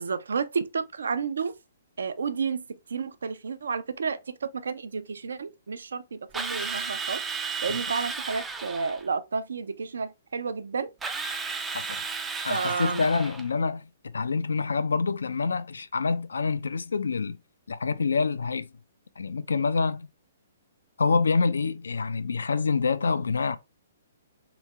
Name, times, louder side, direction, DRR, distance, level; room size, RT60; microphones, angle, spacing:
voice 1, 0.0-1.5 2.0-2.6 2.9-7.2 7.6-10.9 12.5-13.1, right 5 dB, 65° right, 0.5 m, -31 dB
Drill, 6.3-9.0 11.0-13.5, right 5 dB, 10° right, 0.4 m, -33 dB
voice 2, 12.4-17.4 17.7-18.7 19.2-20.1 21.0-23.6, left 4 dB, 65° left, 0.4 m, -26 dB
3.5 x 3.1 x 3.2 m
figure-of-eight pair, 120°, 0 cm